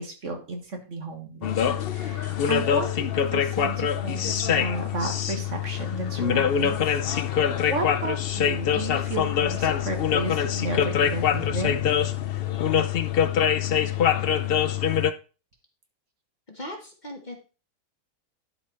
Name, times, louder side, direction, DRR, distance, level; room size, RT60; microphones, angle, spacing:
voice 1, 0.0-1.5 1.9-6.9 7.3-11.8, right 3 dB, 55° right, 4 dB, 1.9 m, -33 dB
sound 1, 1.4-15.1, left 8 dB, 55° left, 0.7 m, -24 dB
voice 2, 16.5-17.3, left 1 dB, 30° left, 2 dB, 1.5 m, -38 dB
11.5 x 5.0 x 4.3 m, 0.34 s
omnidirectional pair, 1.6 m